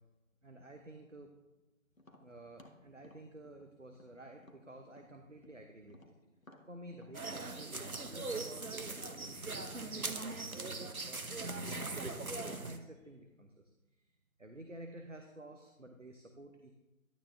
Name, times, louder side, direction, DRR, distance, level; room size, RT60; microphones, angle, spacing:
voice 1, 0.4-1.4 2.2-6.1 6.7-12.2 12.5-13.6 13.9-14.0 14.4-16.7, right 1 dB, 60° right, 4 dB, 0.9 m, -52 dB
Tap, 2.0-5.6 5.9-10.3, left 1 dB, 70° left, 1.5 m, -61 dB
sound 1, 7.1-12.8, right 3 dB, 85° right, 1.1 m, -40 dB
12.0 x 9.6 x 2.6 m, 1.1 s
figure-of-eight pair, 180°, 42 cm